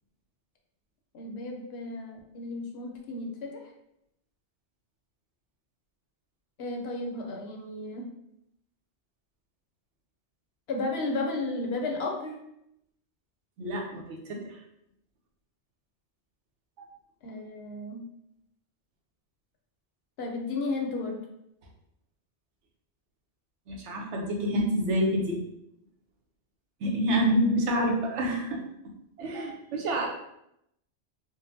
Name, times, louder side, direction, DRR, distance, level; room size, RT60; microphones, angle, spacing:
voice 1, 1.1-3.6 6.6-8.1 10.7-12.4 17.2-18.0 20.2-21.2, left 2 dB, 65° left, 2 dB, 0.8 m, -33 dB
voice 2, 13.6-14.4 16.8-16.9 23.7-25.4 26.8-28.6 29.2-30.1, equal, 90° right, 0 dB, 1.0 m, -27 dB
3.8 x 2.0 x 2.6 m, 0.79 s
omnidirectional pair, 1.2 m